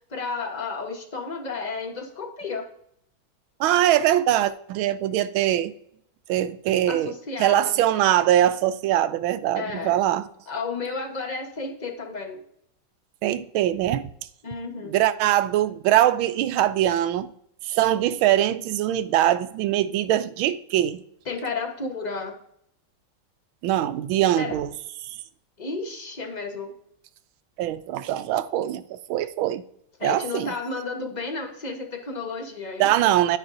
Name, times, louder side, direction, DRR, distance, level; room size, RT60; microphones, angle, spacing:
voice 1, 0.1-2.6 6.9-7.8 9.5-10.0 10.5-12.4 14.4-14.9 21.3-22.3 24.4-24.5 25.6-26.7 30.0-32.9, left 4 dB, 30° left, 0.8 m, -32 dB
voice 2, 3.6-5.7 6.3-10.3 13.2-14.1 14.8-17.3 17.6-21.0 23.6-24.7 25.0-25.2 27.6-29.6 30.0-30.5 32.8-33.4, right 12 dB, 80° right, 1.3 m, -22 dB
9.7 x 9.6 x 2.6 m
omnidirectional pair, 2.3 m